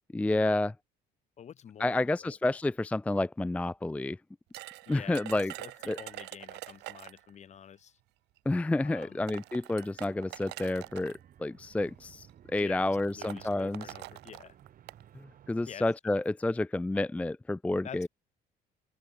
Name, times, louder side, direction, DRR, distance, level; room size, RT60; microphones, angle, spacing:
voice 1, 0.1-0.7 1.8-4.2 4.9-5.5 5.9-6.0 8.5-12.3 12.5-13.9 15.5-18.1, left 2 dB, 10° left, 0.5 m, -29 dB
voice 2, 1.4-2.3 4.9-5.2 5.6-8.0 8.8-9.3 12.6-14.6 15.7-15.8 17.8-18.1, left 8 dB, 45° left, 1.4 m, -48 dB
sound 1, 4.5-7.3 8.4-8.5 9.0-11.2 12.1-12.3 12.6-12.7 13.0-15.0, right 19 dB, 85° right, 2.9 m, -45 dB
sound 2, 9.9-15.8, right 10 dB, 55° right, 4.8 m, -56 dB
open air
cardioid pair, 110°, 17 cm